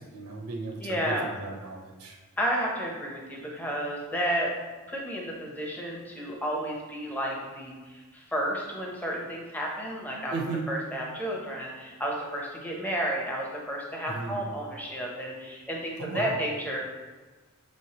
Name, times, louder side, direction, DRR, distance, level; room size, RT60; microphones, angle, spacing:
voice 1, 0.0-2.2 10.3-10.7 14.1-14.4 16.0-16.4, right 3 dB, 75° right, 1 dB, 0.7 m, -35 dB
voice 2, 0.8-1.3 2.4-4.5 4.9-10.3 10.7-16.8, equal, 10° left, -2 dB, 0.7 m, -32 dB
5.9 x 3.2 x 2.8 m, 1.3 s
head